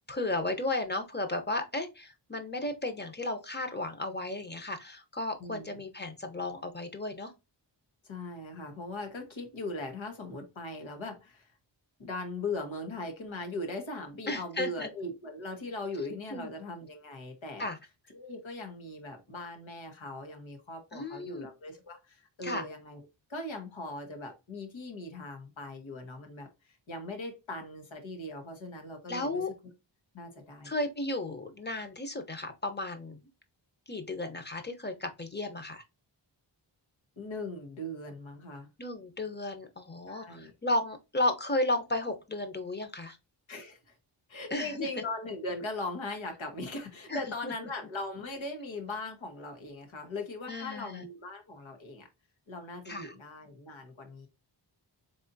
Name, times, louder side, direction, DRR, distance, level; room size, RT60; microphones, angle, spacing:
voice 1, 0.1-7.3 14.3-14.9 16.3-16.5 17.6-17.8 20.9-21.5 22.4-22.7 29.1-29.5 30.6-33.2 33.9-35.8 38.8-43.2 44.5-44.9 47.1-47.5 50.5-51.0 52.9-53.1, left 2 dB, 20° left, 0.9 m, -34 dB
voice 2, 5.4-5.8 8.0-11.5 12.0-17.7 18.1-29.4 30.1-30.7 37.2-38.7 40.1-40.5 43.5-43.9 44.3-52.1 52.5-54.3, left 2 dB, 85° left, 1.5 m, -39 dB
4.1 x 3.5 x 2.6 m
wide cardioid pair, 95°, 45 cm